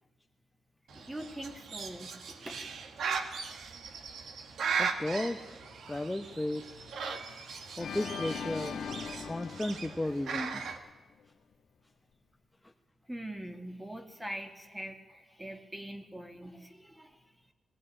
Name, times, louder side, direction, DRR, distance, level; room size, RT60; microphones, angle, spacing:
voice 1, 0.9-2.7 7.2-7.8 13.1-17.4, right 1 dB, 10° right, 6 dB, 2.0 m, -43 dB
Bird, 0.9-10.8, right 5 dB, 80° right, 1.8 m, -38 dB
voice 2, 4.8-5.5 5.9-6.7 7.8-8.8 9.2-10.7, left 1 dB, 10° left, 5 dB, 0.9 m, -34 dB
Organ, 7.8-10.9, left 7 dB, 75° left, 1.3 m, -40 dB
20.5 x 16.0 x 9.9 m, 1.2 s
wide cardioid pair, 145°, 0 cm